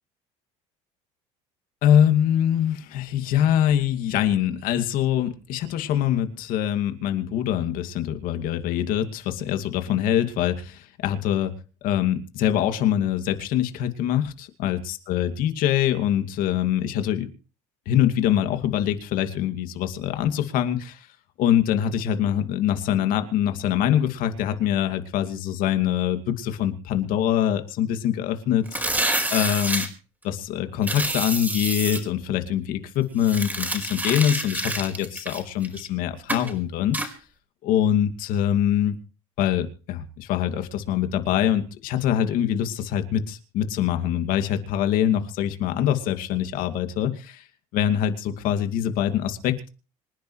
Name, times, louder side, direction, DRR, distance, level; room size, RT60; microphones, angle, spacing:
voice 1, 1.8-11.5 11.8-17.3 17.9-21.1 21.4-28.6 29.3-29.9 30.2-37.1 37.6-39.0 39.4-47.4 47.7-49.7, left 10 dB, 65° left, 7 dB, 2.4 m, -24 dB
sound 1, 28.7-29.9 30.8-32.0 33.2-35.9 36.3-36.5 36.9-37.1, right 1 dB, 10° right, 4.7 m, -27 dB
26.0 x 10.5 x 3.2 m, 0.37 s
supercardioid pair, 100°, 15 cm